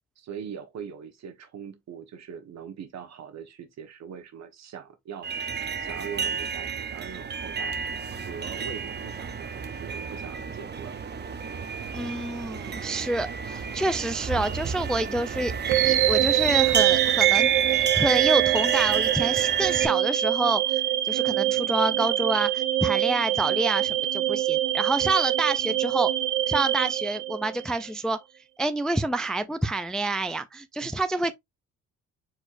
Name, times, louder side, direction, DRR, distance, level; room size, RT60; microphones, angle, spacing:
voice 1, 0.2-5.5 5.8-11.0 30.8-30.9, right 7 dB, 60° right, 1.3 m, -41 dB
sound 1, 5.2-19.9, right 8 dB, 35° right, 0.7 m, -30 dB
voice 2, 11.9-26.1 26.5-28.2 28.6-31.3, right 2 dB, ahead, 0.3 m, -28 dB
sound 2, 15.7-27.8, right 13 dB, 75° right, 0.8 m, -24 dB
4.5 x 4.3 x 2.5 m
cardioid pair, 90°, 30 cm